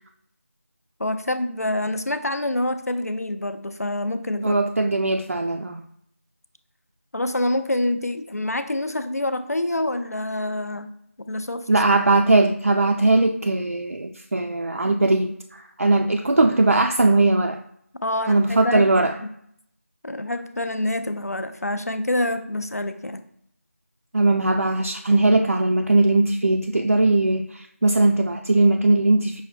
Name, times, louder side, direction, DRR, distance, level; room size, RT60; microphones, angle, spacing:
voice 1, 1.0-4.6 7.1-10.9 11.2-11.7 18.0-19.3 20.0-23.2, left 1 dB, 85° left, 9 dB, 0.5 m, -26 dB
voice 2, 4.4-5.8 11.7-17.6 18.3-19.1 24.1-29.4, right 2 dB, 65° right, 4 dB, 0.3 m, -19 dB
5.6 x 2.1 x 4.3 m, 0.70 s
figure-of-eight pair, 170°, 8 cm